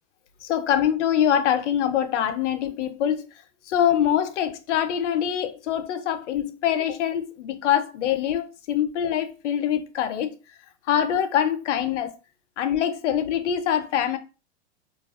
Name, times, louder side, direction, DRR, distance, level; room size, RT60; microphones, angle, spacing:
voice 1, 0.4-3.3 3.7-10.3 10.9-12.1 12.6-14.2, left 9 dB, 85° left, 0.5 m, -24 dB
2.3 x 2.3 x 2.3 m
hypercardioid pair, 130°, 35 cm